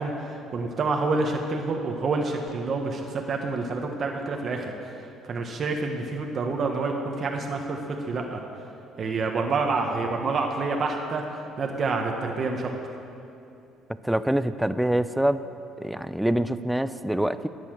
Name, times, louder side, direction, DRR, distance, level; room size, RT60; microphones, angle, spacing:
voice 1, 0.0-4.7 5.2-8.4 9.0-11.2 11.6-12.7, right 3 dB, 45° right, 2 dB, 1.4 m, -28 dB
voice 2, 14.0-15.4 15.8-17.5, right 1 dB, 5° right, 13 dB, 0.5 m, -25 dB
20.5 x 8.4 x 6.5 m, 2.7 s
cardioid pair, 105°, 0 cm